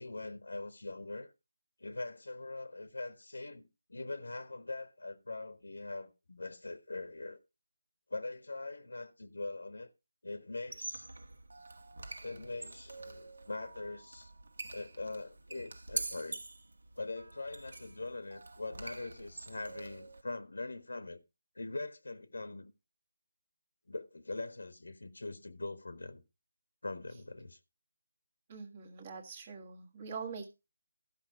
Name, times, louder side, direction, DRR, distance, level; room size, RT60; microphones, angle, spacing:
voice 1, 0.0-1.3 1.8-7.4 8.1-9.9 10.2-11.1 12.2-14.3 14.7-16.4 17.0-21.2 21.5-22.7 23.9-26.2 26.8-27.6, left 2 dB, 85° left, 1.4 m, -42 dB
Squeak, 10.6-20.2, right 2 dB, 75° right, 1.6 m, -45 dB
voice 2, 28.5-30.5, right 5 dB, 20° right, 1.5 m, -44 dB
14.0 x 5.8 x 4.7 m
figure-of-eight pair, 175°, 0 cm